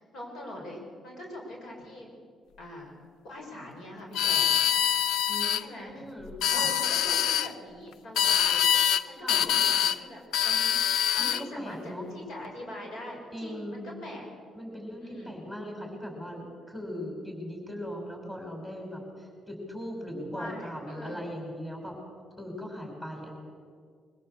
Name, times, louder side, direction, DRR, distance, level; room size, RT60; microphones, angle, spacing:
voice 1, 0.0-2.1 2.6-2.9 3.2-4.5 5.5-6.1 6.5-8.7 9.1-10.7 11.1-14.2 15.0-15.3 20.3-21.2, left 1 dB, 70° left, -1 dB, 6.9 m, -43 dB
sound 1, 4.1-5.6 6.3-7.5 8.2-9.0 9.3-10.0 10.3-11.4, left 10 dB, 85° left, 0.6 m, -24 dB
voice 2, 5.3-6.7 9.2-9.4 11.2-12.1 13.3-13.9 14.5-22.0 22.4-23.4, equal, 10° left, 1 dB, 6.1 m, -39 dB
23.5 x 17.0 x 8.1 m, 2.1 s
cardioid pair, 90°, 0 cm